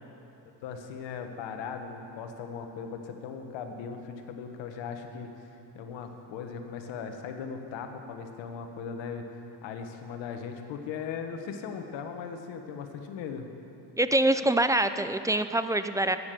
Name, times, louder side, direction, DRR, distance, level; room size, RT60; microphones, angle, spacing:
voice 1, 0.6-13.5, left 6 dB, 85° left, 5 dB, 1.4 m, -38 dB
voice 2, 14.0-16.2, right 1 dB, 10° right, 10 dB, 0.4 m, -25 dB
13.5 x 9.6 x 6.8 m, 2.8 s
cardioid pair, 95°, 43 cm